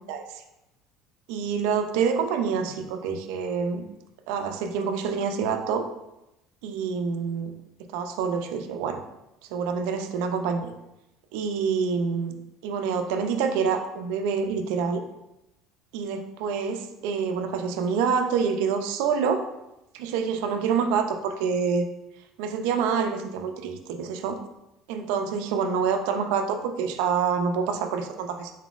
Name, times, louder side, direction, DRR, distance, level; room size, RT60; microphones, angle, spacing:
voice 1, 0.1-0.4 1.3-3.9 4.3-5.8 6.6-7.5 7.9-9.0 9.5-10.7 11.3-12.4 12.6-15.0 15.9-19.4 19.9-21.9 22.4-24.4 24.9-28.5, right 6 dB, 85° right, 6 dB, 0.4 m, -27 dB
4.1 x 3.8 x 2.4 m, 0.91 s
cardioid pair, 130°, 0 cm